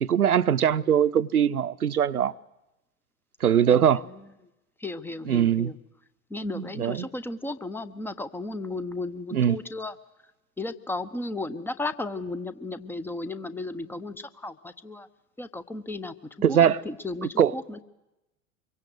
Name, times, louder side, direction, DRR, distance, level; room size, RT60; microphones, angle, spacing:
voice 1, 0.0-2.3 3.4-4.0 5.2-5.7 6.5-7.1 9.3-9.6 16.4-16.8 17.2-17.6, right 9 dB, 80° right, 0.8 m, -22 dB
voice 2, 3.7-4.0 4.8-5.7 6.3-9.9 10.6-15.1 15.4-16.1 16.5-17.8, left 2 dB, 5° left, 0.8 m, -34 dB
25.0 x 23.0 x 8.0 m
figure-of-eight pair, 95°, 44 cm